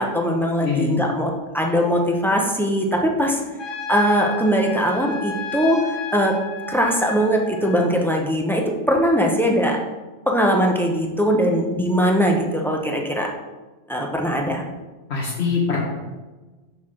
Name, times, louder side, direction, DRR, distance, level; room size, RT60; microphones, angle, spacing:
voice 1, 0.0-3.4 3.9-6.4 6.7-9.8 10.3-13.3 13.9-14.6, equal, ahead, 0 dB, 0.8 m, -21 dB
voice 2, 0.6-1.0 15.1-15.8, left 5 dB, 80° left, -6 dB, 1.7 m, -23 dB
Trumpet, 3.6-7.9, left 4 dB, 55° left, 0.9 m, -33 dB
5.6 x 4.6 x 6.3 m, 1.2 s
omnidirectional pair, 1.1 m